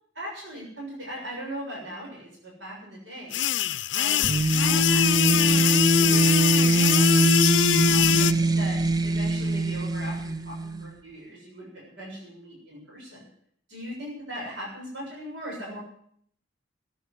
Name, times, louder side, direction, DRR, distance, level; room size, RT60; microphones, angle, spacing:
voice 1, 0.2-3.4 3.9-4.2 4.6-7.3 7.9-13.2 13.7-15.8, equal, 75° right, -3 dB, 7.2 m, -39 dB
sound 1, 3.3-8.3, left 11 dB, 75° left, 0.6 m, -23 dB
sound 2, 4.2-10.9, right 2 dB, 20° right, 0.6 m, -23 dB
13.5 x 10.0 x 9.5 m, 0.63 s
head